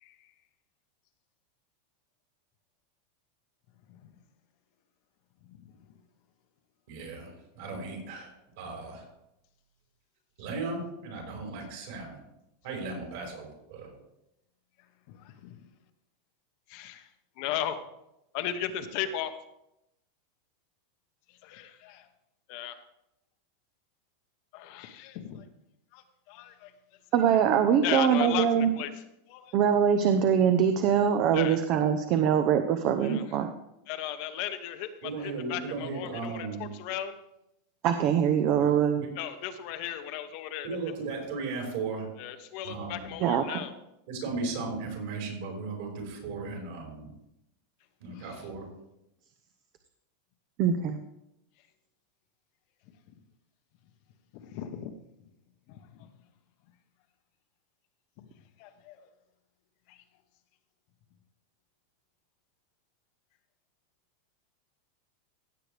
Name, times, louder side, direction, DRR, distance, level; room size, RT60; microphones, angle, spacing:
voice 1, 6.9-8.3 8.6-9.0 10.4-12.2 12.6-13.9 35.0-36.7 38.6-39.1 40.6-42.1 42.6-43.1 44.1-47.1 48.0-48.7, right 3 dB, 65° right, 0 dB, 5.0 m, -36 dB
voice 2, 16.7-17.1 17.4-17.8 18.3-19.3 21.4-22.1 22.5-22.8 24.5-25.4 25.9-26.7 27.8-28.9 29.3-29.5 31.3-31.6 33.0-33.2 33.9-37.2 39.2-40.7 42.2-43.7 48.1-48.4 54.3-55.0 55.7-56.1 58.6-59.1 59.9-60.0, left 11 dB, 50° left, 8 dB, 0.9 m, -36 dB
voice 3, 27.1-28.7 29.5-33.5 37.8-39.1 43.2-43.6 50.6-51.0, right 8 dB, 40° right, 8 dB, 0.6 m, -23 dB
16.0 x 7.8 x 3.4 m, 0.85 s
supercardioid pair, 155°, 0 cm